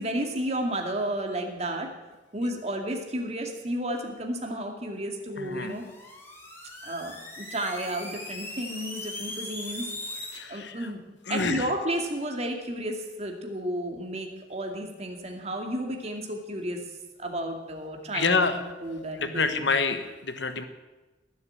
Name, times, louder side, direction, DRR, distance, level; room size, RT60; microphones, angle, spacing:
voice 1, 0.0-1.9 2.3-5.9 6.8-9.9 10.5-16.8 17.2-19.6, right 1 dB, 35° right, 2 dB, 2.3 m, -32 dB
voice 2, 5.4-5.7 10.3-10.9 11.3-11.7 18.1-20.6, left 4 dB, 70° left, 9 dB, 1.3 m, -28 dB
sound 1, 5.5-10.4, left 1 dB, 15° left, 3.2 m, -39 dB
19.0 x 8.0 x 8.9 m, 1.1 s
head